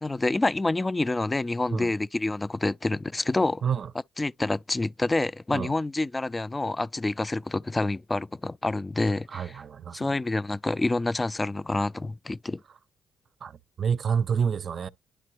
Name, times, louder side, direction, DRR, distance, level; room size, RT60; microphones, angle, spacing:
voice 1, 0.0-3.7 4.2-9.6 9.9-12.6, left 2 dB, 20° left, 0.3 m, -27 dB
voice 2, 3.6-3.9 5.5-5.8 9.3-10.2 13.4-13.5 13.8-14.9, right 7 dB, 50° right, 0.5 m, -28 dB
10.5 x 3.8 x 3.1 m
cardioid pair, 90°, 0 cm